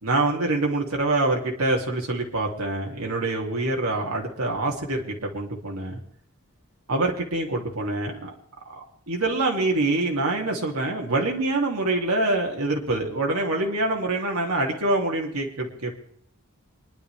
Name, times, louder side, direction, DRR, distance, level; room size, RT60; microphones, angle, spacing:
voice 1, 0.0-6.0 6.9-8.3 8.7-16.0, right 2 dB, 75° right, 0 dB, 2.6 m, -25 dB
25.0 x 11.0 x 3.4 m, 0.66 s
head